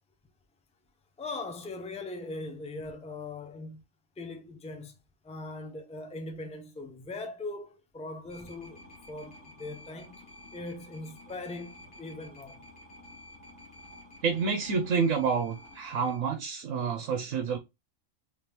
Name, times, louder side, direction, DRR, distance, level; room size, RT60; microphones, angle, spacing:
voice 1, 1.2-3.8 4.2-5.0 5.2-8.8 9.1-10.2 10.5-12.6, left 2 dB, 5° left, 0.5 m, -40 dB
sound 1, 8.3-16.2, left 1 dB, 50° left, 1.9 m, -51 dB
voice 2, 14.2-17.6, right 5 dB, 75° right, 1.1 m, -28 dB
3.5 x 3.4 x 2.9 m
omnidirectional pair, 1.3 m